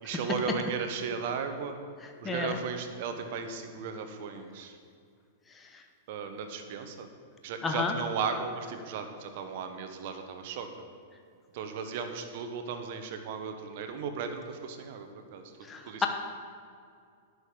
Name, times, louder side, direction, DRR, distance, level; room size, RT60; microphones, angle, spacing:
voice 1, 0.0-1.7 2.2-4.8 6.1-7.1 7.4-10.7 11.5-15.4 15.9-16.1, right 6 dB, 60° right, 7 dB, 1.1 m, -36 dB
voice 2, 2.2-2.6 7.6-7.9 15.7-16.1, left 5 dB, 20° left, 4 dB, 0.9 m, -30 dB
10.5 x 6.5 x 5.0 m, 2.3 s
hypercardioid pair, 120°, 0 cm